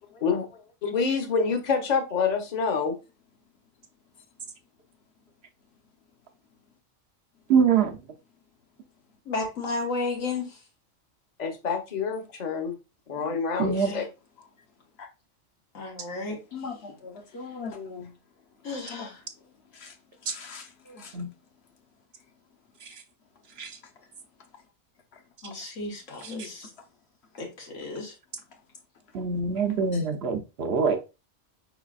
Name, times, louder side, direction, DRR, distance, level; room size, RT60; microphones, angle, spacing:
voice 1, 0.8-3.0 11.4-12.7 13.1-14.1, left 5 dB, 40° left, 0.8 m, -27 dB
voice 2, 7.5-8.0 13.6-13.9 21.1-21.3 23.6-23.7 26.2-26.3 29.1-31.0, right 6 dB, 60° right, 0.8 m, -24 dB
voice 3, 9.3-10.6 13.2-13.3 13.8-14.0 15.7-16.4 18.6-19.1 25.4-26.7 27.4-28.1, left 3 dB, 90° left, 1.7 m, -33 dB
voice 4, 16.3-18.1 18.6-21.3 23.8-24.1 24.4-24.6 25.1-25.2 26.1-26.8 27.3-27.4 28.5-28.6 29.1-29.2 29.9-30.1, left 5 dB, 60° left, 1.1 m, -43 dB
4.9 x 4.0 x 2.3 m
omnidirectional pair, 1.3 m